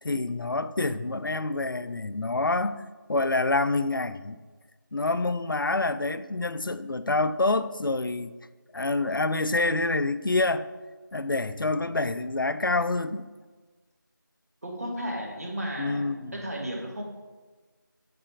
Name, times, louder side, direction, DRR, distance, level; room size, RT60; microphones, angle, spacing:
voice 1, 0.0-2.8 3.1-4.4 4.9-8.3 8.7-10.7 11.1-13.3 15.8-16.3, left 2 dB, 80° left, 0.5 m, -27 dB
voice 2, 14.6-16.0 16.3-17.0, equal, 45° right, 1.5 m, -33 dB
7.9 x 4.2 x 4.9 m
figure-of-eight pair, 175°, 11 cm